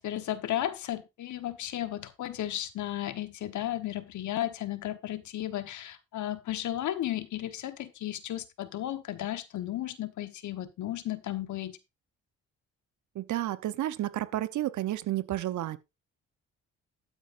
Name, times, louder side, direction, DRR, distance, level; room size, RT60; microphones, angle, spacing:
voice 1, 0.0-11.8, left 13 dB, 70° left, 1.3 m, -34 dB
voice 2, 13.1-15.8, right 14 dB, 75° right, 0.9 m, -31 dB
13.0 x 9.0 x 2.6 m
cardioid pair, 90°, 30 cm